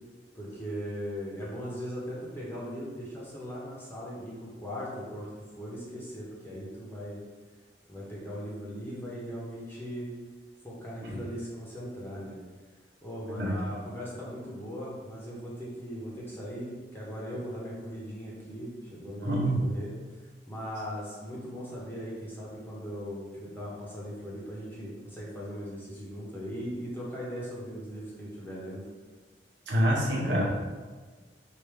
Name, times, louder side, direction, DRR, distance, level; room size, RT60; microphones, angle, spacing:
voice 1, 0.3-7.2 7.9-10.1 10.6-12.4 13.0-19.9 20.2-28.9, equal, 10° left, -6 dB, 1.0 m, -39 dB
voice 2, 19.2-19.6 29.7-30.4, equal, 80° right, -3 dB, 1.0 m, -26 dB
5.0 x 2.6 x 3.3 m, 1.4 s
head